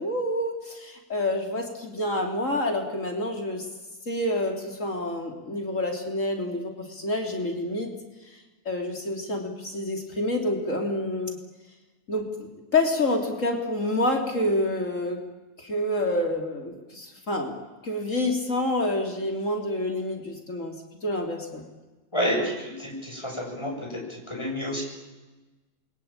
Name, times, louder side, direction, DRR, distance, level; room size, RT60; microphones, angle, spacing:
voice 1, 0.0-3.7 4.1-7.9 8.3-11.4 12.1-15.2 15.6-17.5 17.8-21.6, left 1 dB, 50° left, 2 dB, 3.6 m, -28 dB
voice 2, 22.1-24.8, equal, 15° left, 0 dB, 7.4 m, -29 dB
28.0 x 22.5 x 8.9 m, 1.2 s
omnidirectional pair, 1.7 m